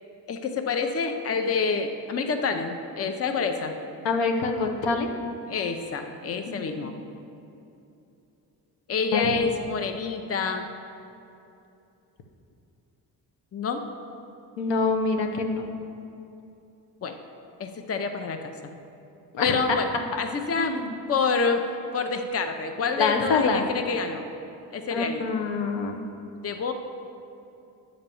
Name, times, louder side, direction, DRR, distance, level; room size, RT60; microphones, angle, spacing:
voice 1, 0.3-3.7 5.5-6.9 8.9-10.7 13.5-13.8 17.0-17.2 17.6-18.5 19.4-21.6 21.9-24.2 24.7-25.2 26.4-26.7, left 5 dB, 35° left, 6 dB, 0.6 m, -27 dB
voice 2, 4.0-5.1 6.5-6.9 9.1-9.3 14.6-15.7 19.3-19.6 20.6-20.9 23.0-23.7 24.9-26.0, left 4 dB, 85° left, 3 dB, 0.9 m, -26 dB
8.8 x 4.0 x 6.9 m, 2.8 s
cardioid pair, 80°, 43 cm